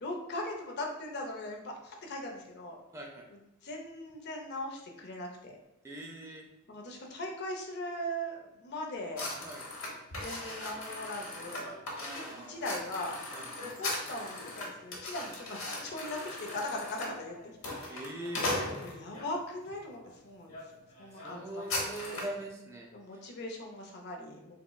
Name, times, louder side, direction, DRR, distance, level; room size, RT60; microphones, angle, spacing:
voice 1, 0.0-2.8 3.6-5.6 6.7-9.3 10.1-11.7 12.0-13.2 13.6-18.2 18.8-20.6 21.0-21.6 22.9-24.5, left 1 dB, 55° left, 1 dB, 0.6 m, -40 dB
voice 2, 2.9-3.2 5.8-6.4 9.4-9.6 11.9-12.5 13.3-13.4 17.9-18.4 21.1-23.2, right 1 dB, 15° right, 0 dB, 0.4 m, -42 dB
sound 1, 9.1-19.3 19.9-20.1 20.5-20.6 20.9-22.4, left 2 dB, 80° left, 0.9 m, -38 dB
3.6 x 3.0 x 2.2 m, 0.93 s
head